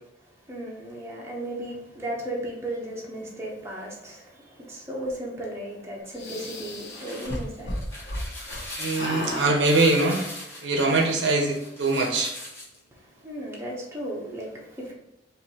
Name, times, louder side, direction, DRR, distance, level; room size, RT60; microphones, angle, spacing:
voice 1, 0.5-8.0 12.9-14.9, right 1 dB, 15° right, 0.9 m, -35 dB
sound 1, 6.2-8.6 8.9-9.5, left 1 dB, 60° left, 1.0 m, -33 dB
sound 2, 6.6-12.8, left 1 dB, 15° left, 1.1 m, -40 dB
voice 2, 8.8-10.2 10.6-12.3, right 2 dB, 70° right, 0.8 m, -22 dB
4.5 x 2.7 x 4.2 m
head